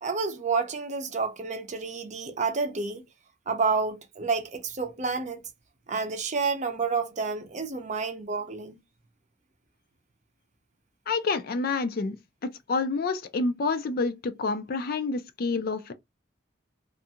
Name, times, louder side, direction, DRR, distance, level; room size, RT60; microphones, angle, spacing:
voice 1, 0.0-3.0 3.5-5.4 5.9-8.8, right 4 dB, 40° right, 0.6 m, -29 dB
voice 2, 11.1-12.2 12.4-15.9, left 4 dB, 55° left, 0.4 m, -28 dB
2.5 x 2.2 x 2.7 m
head